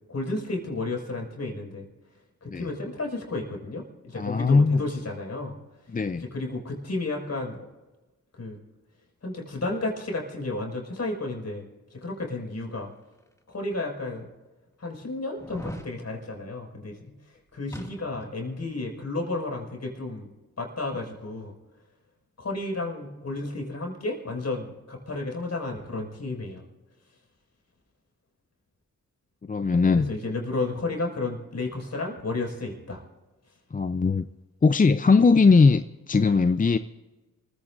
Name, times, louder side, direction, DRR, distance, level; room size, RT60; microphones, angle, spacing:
voice 1, 0.1-1.9 2.4-5.6 6.1-7.7 8.4-8.6 9.2-11.6 11.9-12.9 13.5-14.3 14.8-17.1 17.5-20.3 20.6-21.5 22.4-26.6 30.1-33.0, left 2 dB, 50° left, 0 dB, 5.9 m, -32 dB
voice 2, 4.1-4.9 5.9-6.3 29.4-30.1 33.7-34.3 34.6-36.8, left 4 dB, 25° left, 11 dB, 0.6 m, -20 dB
sound 1, 13.4-13.5 14.2-14.3 15.3-15.9 17.7-18.4 18.7-18.8, equal, 10° left, 2.2 m, -39 dB
26.5 x 16.0 x 2.6 m, 1.2 s
cardioid pair, 60°, 34 cm